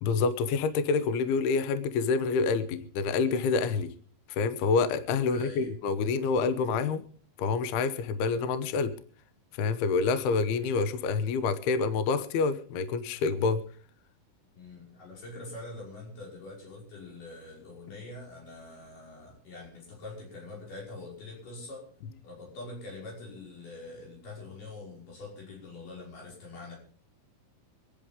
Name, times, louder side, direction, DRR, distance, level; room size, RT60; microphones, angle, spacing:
voice 1, 0.0-3.9 4.3-7.0 7.4-8.9 9.6-13.6, left 4 dB, 75° left, 12 dB, 2.4 m, -27 dB
voice 2, 5.3-5.7 14.5-21.8 22.2-26.7, left 2 dB, 45° left, -3 dB, 7.0 m, -44 dB
26.5 x 10.5 x 3.6 m, 0.43 s
omnidirectional pair, 5.5 m